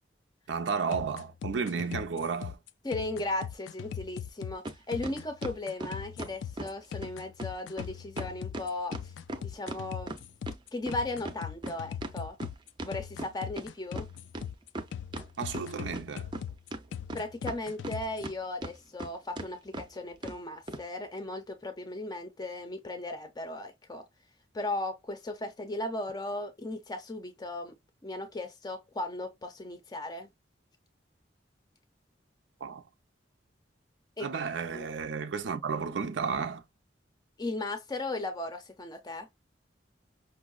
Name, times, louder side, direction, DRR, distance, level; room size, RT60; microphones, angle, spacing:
sound 1, 0.5-18.2, left 8 dB, 90° left, 0.3 m, -40 dB
voice 1, 0.5-2.6 15.4-16.3 32.6-32.8 34.2-36.6, right 5 dB, 90° right, 0.5 m, -32 dB
voice 2, 2.8-9.1 9.4-10.1 10.7-12.4 12.8-14.1 17.1-24.1 24.5-27.8 28.0-30.3 34.2-34.3 34.7-34.9 37.4-39.3, left 2 dB, 20° left, 0.5 m, -36 dB
sound 2, 4.6-4.8 5.0-6.7 7.0-7.1 7.4-7.5 7.8-7.9 8.2-10.6 10.9-13.7 13.9-14.0 14.3-15.3 15.5-16.4 16.7-18.3 18.6-19.1 19.4-19.5 19.7-19.9 20.2-20.4 20.7-20.8, right 1 dB, 25° right, 0.5 m, -38 dB
5.4 x 2.0 x 2.3 m
head